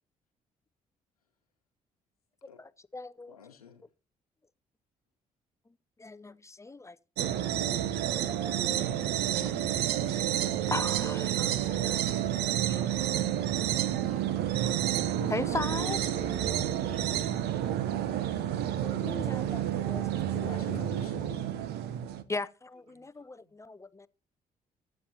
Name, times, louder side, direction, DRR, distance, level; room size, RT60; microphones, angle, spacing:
voice 1, 2.4-3.4 6.0-7.0 7.2-7.4 10.7-12.1 12.7-12.8 15.3-16.0 18.8-20.1 20.3-20.5 22.3-24.1, left 3 dB, 15° left, 0.6 m, -38 dB
voice 2, 3.3-3.8 14.1-14.2 15.1-16.3 20.3-21.5, left 7 dB, 90° left, 1.0 m, -45 dB
sound 1, 7.2-22.2, right 11 dB, 65° right, 0.9 m, -30 dB
voice 3, 16.8-17.6 22.9-23.7, right 5 dB, 85° right, 2.1 m, -53 dB
15.5 x 11.5 x 2.8 m
figure-of-eight pair, 45°, 18 cm